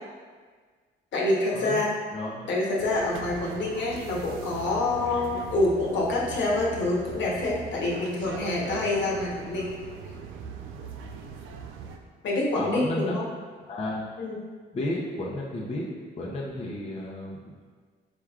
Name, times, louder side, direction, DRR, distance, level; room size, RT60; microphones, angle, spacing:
voice 1, 1.1-1.9 2.5-9.7 12.2-13.2 14.2-14.4, left 2 dB, 65° left, -4 dB, 1.0 m, -26 dB
voice 2, 2.1-2.5 12.5-13.2 13.6-14.0 14.7-15.8 16.2-17.4, left 1 dB, 30° left, -4 dB, 0.6 m, -32 dB
sound 1, 2.8-12.0, right 5 dB, 85° right, 0.4 m, -40 dB
4.5 x 3.4 x 2.3 m, 1.5 s
cardioid pair, 90°, 20 cm